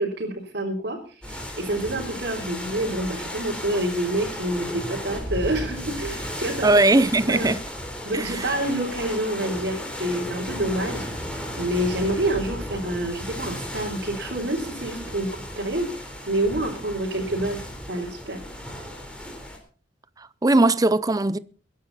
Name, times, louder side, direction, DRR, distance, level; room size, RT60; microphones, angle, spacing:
voice 1, 0.0-6.7 7.3-7.6 8.1-11.0 11.6-15.9 16.3-17.6 17.9-18.4, right 1 dB, 65° right, 3.9 m, -27 dB
sound 1, 1.2-19.6, equal, 5° left, 4.2 m, -34 dB
voice 2, 6.6-7.6 8.1-8.5 20.4-21.4, right 2 dB, 20° right, 0.6 m, -19 dB
22.0 x 10.5 x 4.2 m
head